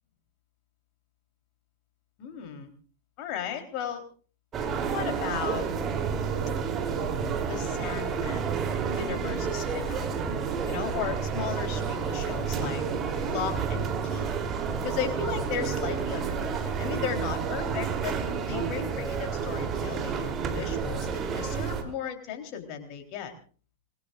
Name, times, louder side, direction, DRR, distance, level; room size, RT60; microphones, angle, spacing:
voice 1, 2.2-2.7 3.2-4.0 4.9-5.6 7.4-8.5 9.0-10.1 10.7-12.8 13.2-14.3 14.8-18.1 18.5-23.3, left 8 dB, 40° left, 5 dB, 3.8 m, -35 dB
sound 1, 4.5-21.8, right 6 dB, 30° right, 3.3 m, -30 dB
26.0 x 21.5 x 2.5 m, 0.39 s
figure-of-eight pair, 90°, 0 cm